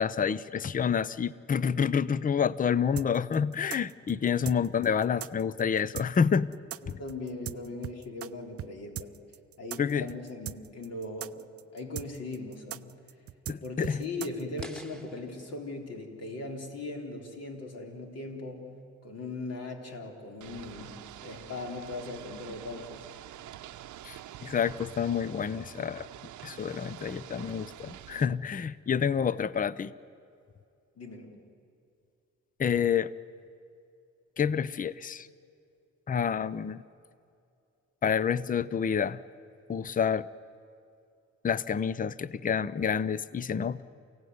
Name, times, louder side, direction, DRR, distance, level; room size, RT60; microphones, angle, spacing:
voice 1, 0.0-6.5 6.9-7.0 9.8-10.1 13.5-14.0 24.0-26.1 26.4-29.9 32.6-33.1 34.4-35.3 36.1-36.8 38.0-39.2 39.7-40.3 41.4-43.8, left 7 dB, 30° left, 18 dB, 0.6 m, -28 dB
sound 1, 3.0-8.3 8.6-8.7 8.9-14.7, right 11 dB, 50° right, 0.6 m, -39 dB
voice 2, 6.8-9.1 9.6-11.4 11.7-13.0 13.6-18.7 19.0-20.9 21.2-23.1 31.0-31.3, left 2 dB, 55° left, 2 dB, 3.9 m, -39 dB
sound 2, 14.6-17.6, right 1 dB, ahead, 1.8 m, -52 dB
Ocean / Boat Water vehicle, 20.4-28.3, right 12 dB, 75° right, 0.8 m, -47 dB
28.5 x 16.5 x 9.5 m, 2.5 s
cardioid pair, 90°, 30 cm